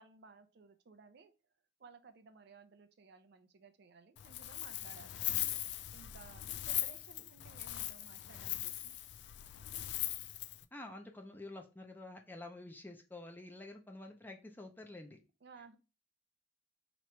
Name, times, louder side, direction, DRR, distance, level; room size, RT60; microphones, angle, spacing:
voice 1, 0.0-1.3 1.8-5.6 5.9-8.9 15.4-15.8, right 5 dB, 60° right, 9 dB, 0.5 m, -58 dB
Wind, 4.2-10.6, left 14 dB, 65° left, 0.3 m, -40 dB
voice 2, 10.7-15.2, left 2 dB, 10° left, 3 dB, 0.5 m, -49 dB
3.0 x 3.0 x 4.5 m, 0.31 s
head